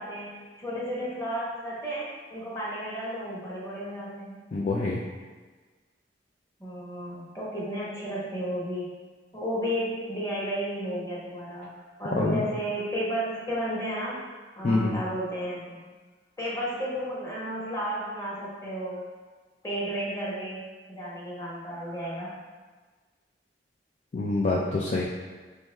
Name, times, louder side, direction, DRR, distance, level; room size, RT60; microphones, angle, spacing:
voice 1, 0.0-4.4 6.6-9.0 9.3-11.7 12.0-14.2 14.6-15.8 16.4-19.0 19.6-20.6 20.9-22.3, equal, 20° left, -7 dB, 1.0 m, -33 dB
voice 2, 4.5-5.0 12.2-12.4 14.6-15.0 24.1-25.0, left 2 dB, 40° left, -4 dB, 0.3 m, -26 dB
4.4 x 2.3 x 3.1 m, 1.4 s
head